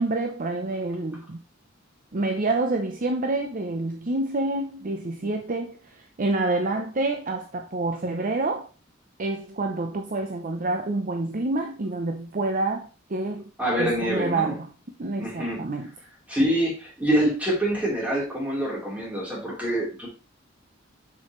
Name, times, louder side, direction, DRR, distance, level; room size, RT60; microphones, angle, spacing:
voice 1, 0.0-1.4 2.1-8.7 9.2-13.4 13.8-14.7 15.0-15.9, right 2 dB, 45° right, 0.7 m, -27 dB
voice 2, 13.6-14.5 15.2-15.6 16.3-20.1, right 1 dB, 10° right, 3.5 m, -25 dB
7.4 x 6.2 x 3.1 m
head